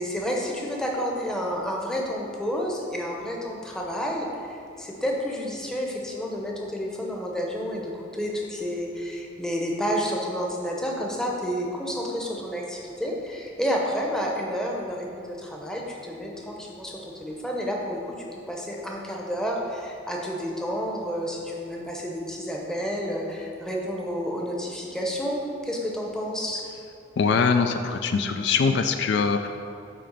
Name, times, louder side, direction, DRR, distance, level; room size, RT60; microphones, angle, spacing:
voice 1, 0.0-18.1 18.5-26.6, equal, 5° left, -2 dB, 0.7 m, -30 dB
voice 2, 27.2-29.5, left 5 dB, 60° left, 7 dB, 0.3 m, -22 dB
8.7 x 3.4 x 5.2 m, 2.6 s
head